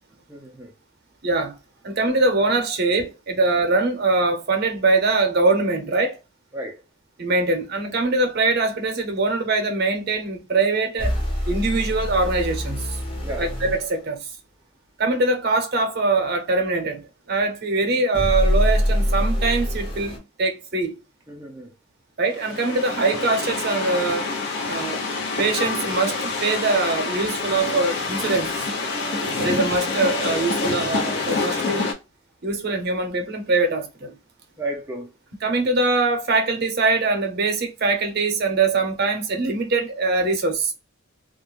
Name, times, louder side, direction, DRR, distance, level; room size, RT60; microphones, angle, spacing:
voice 1, 0.3-0.7 6.5-6.8 13.2-13.5 21.3-21.7 29.0-29.5 34.6-35.1, right 1 dB, 15° right, 0.4 m, -34 dB
voice 2, 1.2-1.6 1.8-6.2 7.2-11.1 11.5-13.0 13.4-14.3 15.0-17.0 17.3-20.9 22.2-24.3 24.7-25.1 25.4-28.5 29.4-31.9 32.4-34.1 35.4-40.7, right 3 dB, 55° right, 0.7 m, -22 dB
sound 1, 11.0-13.8 18.1-20.2, equal, 25° left, 0.8 m, -24 dB
sound 2, 22.3-31.9, left 3 dB, 55° left, 0.7 m, -27 dB
2.3 x 2.1 x 3.0 m
head